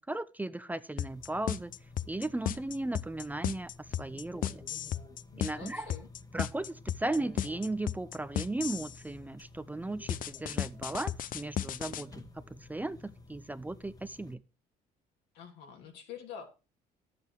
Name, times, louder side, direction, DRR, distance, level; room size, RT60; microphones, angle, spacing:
voice 1, 0.0-1.7 2.1-3.7 4.0-4.6 5.4-5.9 6.3-14.4, right 2 dB, 10° right, 0.5 m, -36 dB
sound 1, 1.0-9.0 10.1-12.0, left 11 dB, 55° left, 0.6 m, -34 dB
sound 2, 1.1-14.3, left 3 dB, 20° left, 1.4 m, -52 dB
voice 2, 5.3-6.1 15.3-16.5, left 7 dB, 85° left, 2.8 m, -46 dB
11.0 x 7.7 x 4.6 m
cardioid pair, 110°, 17 cm